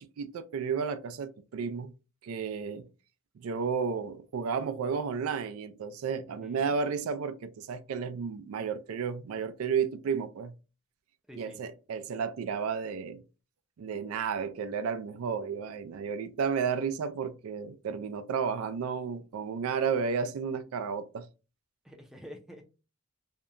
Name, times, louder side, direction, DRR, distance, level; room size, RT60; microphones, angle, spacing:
voice 1, 0.0-1.9 2.2-2.9 3.4-10.5 11.4-13.2 13.8-21.3, right 6 dB, 85° right, 0.3 m, -32 dB
voice 2, 6.3-6.8 11.3-11.6 21.8-22.6, equal, ahead, 0.4 m, -48 dB
2.7 x 2.1 x 2.4 m
head